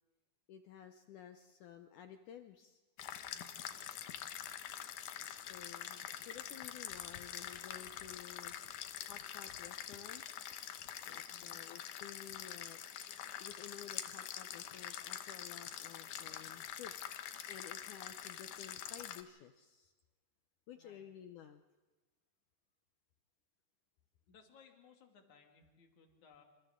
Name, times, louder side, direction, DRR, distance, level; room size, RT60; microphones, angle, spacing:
voice 1, 0.5-2.8 5.4-10.2 11.1-12.8 13.4-17.0 17.5-19.9 20.7-21.6, left 9 dB, 90° left, 8 dB, 1.7 m, -54 dB
sound 1, 3.0-19.2, left 10 dB, 70° left, 2.1 m, -45 dB
voice 2, 3.3-3.6 11.3-11.6 20.7-21.0 24.3-26.4, left 5 dB, 50° left, 3 dB, 3.6 m, -63 dB
27.5 x 26.5 x 3.8 m, 1.3 s
omnidirectional pair, 4.7 m